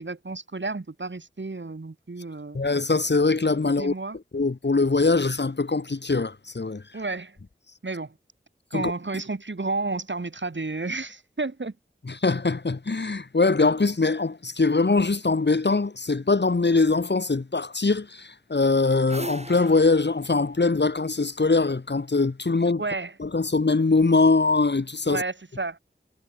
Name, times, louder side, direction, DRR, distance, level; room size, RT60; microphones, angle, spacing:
voice 1, 0.0-2.6 3.6-4.2 6.9-7.4 7.8-8.1 8.7-11.7 22.8-23.2 25.1-25.8, right 3 dB, 65° right, 6.7 m, -31 dB
voice 2, 2.5-3.9 4.3-6.8 8.7-8.9 12.1-22.8 23.2-25.2, left 3 dB, 60° left, 2.1 m, -22 dB
sound 1, 18.7-21.7, right 1 dB, 35° right, 6.8 m, -40 dB
wide cardioid pair, 55°, 20 cm